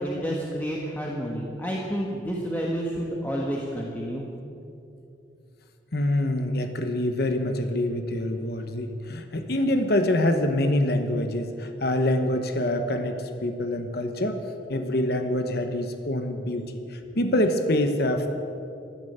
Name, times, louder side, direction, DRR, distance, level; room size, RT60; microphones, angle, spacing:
voice 1, 0.0-4.2, equal, 10° left, -3 dB, 1.3 m, -30 dB
voice 2, 5.9-14.4 14.7-18.3, left 1 dB, 55° left, 7 dB, 1.0 m, -25 dB
15.0 x 11.0 x 8.0 m, 2.7 s
head